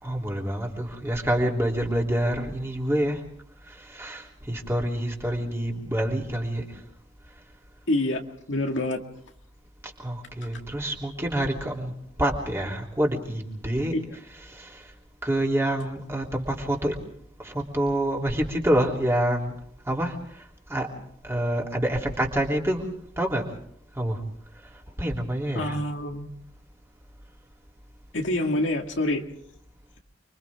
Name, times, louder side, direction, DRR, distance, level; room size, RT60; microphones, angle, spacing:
voice 1, 0.0-3.2 3.6-6.8 9.8-13.9 14.5-14.9 15.2-17.0 17.4-19.5 19.8-20.9 21.2-22.9 23.2-23.5 23.9-24.2 24.6-25.8, right 1 dB, 15° right, -1 dB, 3.3 m, -27 dB
voice 2, 7.9-8.2 8.5-9.0 25.6-26.3 28.1-29.3, left 1 dB, 80° left, 3 dB, 2.1 m, -26 dB
30.0 x 24.0 x 3.6 m, 0.68 s
head